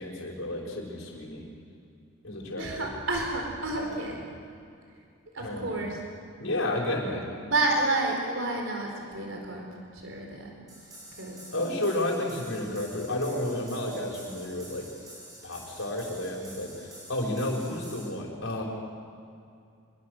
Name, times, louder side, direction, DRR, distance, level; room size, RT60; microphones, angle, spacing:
voice 1, 0.0-1.4 2.2-2.9 3.8-3.9 5.4-5.9 6.4-7.2 11.5-14.8 15.4-18.6, left 1 dB, 75° left, -1 dB, 5.7 m, -32 dB
voice 2, 2.6-4.2 5.3-6.0 7.4-10.5 11.1-11.4, right 2 dB, 70° right, 1 dB, 4.6 m, -30 dB
sound 1, 10.7-18.1, right 1 dB, 20° right, 6.6 m, -48 dB
28.0 x 22.5 x 6.8 m, 2.4 s
head